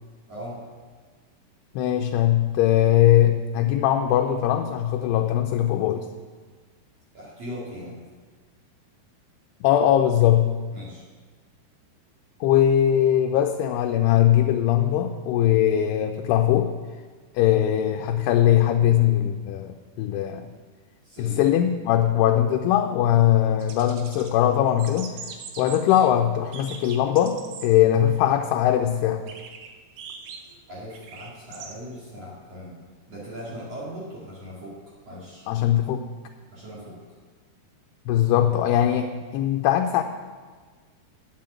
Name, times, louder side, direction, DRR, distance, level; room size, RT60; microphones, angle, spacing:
voice 1, 0.3-0.6 7.1-8.0 10.7-11.0 21.0-21.5 27.8-27.9 30.7-32.7 33.1-34.8 35.1-35.5 36.5-37.0, equal, 45° right, -7 dB, 3.0 m, -39 dB
voice 2, 1.8-6.1 9.6-10.5 12.4-16.7 17.4-20.5 21.2-25.1 25.6-29.2 35.5-36.0 38.1-40.0, left 11 dB, 85° left, 4 dB, 2.6 m, -20 dB
sound 1, 23.6-24.3 24.7-26.1 26.5-27.7 28.1-28.2 29.3-31.7, right 6 dB, 70° right, 2.1 m, -42 dB
9.2 x 7.6 x 7.4 m, 1.5 s
omnidirectional pair, 4.7 m